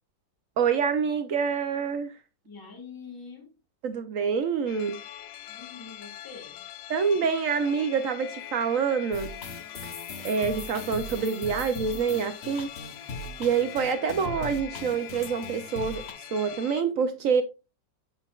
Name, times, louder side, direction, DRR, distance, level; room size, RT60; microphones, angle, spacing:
voice 1, 0.6-2.1 3.8-5.0 6.9-9.3 10.2-12.7 13.4-16.0 16.3-17.4, right 6 dB, 65° right, 0.8 m, -26 dB
voice 2, 2.4-3.6 5.5-6.6, left 5 dB, 10° left, 1.6 m, -45 dB
sound 1, 4.7-16.8, left 12 dB, 85° left, 1.3 m, -43 dB
sound 2, 9.1-16.1, left 2 dB, 45° left, 1.0 m, -39 dB
7.7 x 5.9 x 2.3 m
omnidirectional pair, 1.9 m